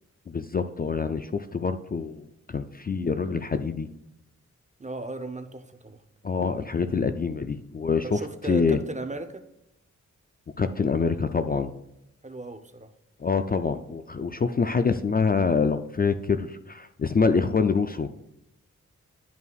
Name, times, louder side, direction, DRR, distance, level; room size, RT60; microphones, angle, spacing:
voice 1, 0.3-3.9 6.2-8.8 10.6-11.7 13.2-18.1, left 5 dB, 30° left, 9 dB, 0.4 m, -26 dB
voice 2, 4.8-6.0 8.0-9.4 12.2-12.9, right 2 dB, 25° right, 7 dB, 0.7 m, -36 dB
11.0 x 5.5 x 2.4 m, 0.83 s
cardioid pair, 55°, 32 cm